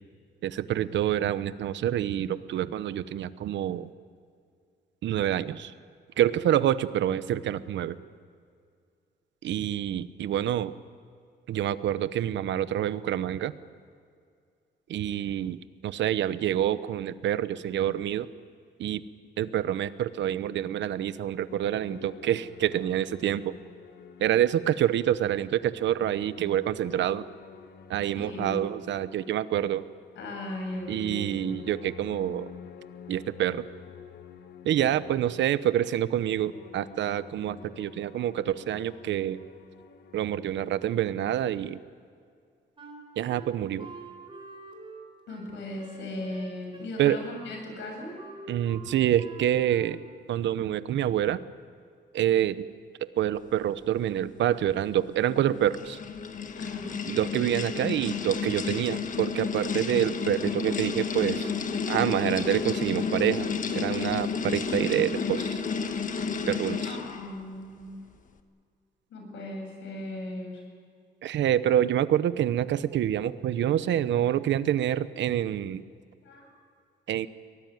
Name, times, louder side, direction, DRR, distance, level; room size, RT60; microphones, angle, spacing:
voice 1, 0.4-3.9 5.0-5.7 6.2-8.0 9.4-10.7 11.5-13.5 14.9-18.3 18.8-19.0 19.4-23.5 24.2-27.2 27.9-29.8 30.9-32.5 33.1-33.6 34.6-39.4 40.1-41.8 43.2-43.9 47.0-47.2 48.5-50.0 50.3-51.4 52.1-52.6 53.2-56.0 57.1-61.5 61.9-63.5 63.7-65.6 66.5-66.8 71.2-75.8 77.1-77.3, right 11 dB, 75° right, 14 dB, 0.9 m, -27 dB
sound 1, 21.5-25.0 25.4-40.4, left 7 dB, 60° left, 1.5 m, -49 dB
voice 2, 28.1-28.8 30.1-31.6 45.3-48.1 56.5-56.9 66.8-68.0 69.1-70.6 76.2-76.5, left 1 dB, 80° left, 3 dB, 7.6 m, -37 dB
Wind instrument woodwind instrument, 42.8-50.2, right 3 dB, 30° right, 4.3 m, -46 dB
sound 2, 55.2-67.3, left 5 dB, 45° left, 1.5 m, -31 dB
24.0 x 18.5 x 9.3 m, 2.3 s
cardioid pair, 135°, 19 cm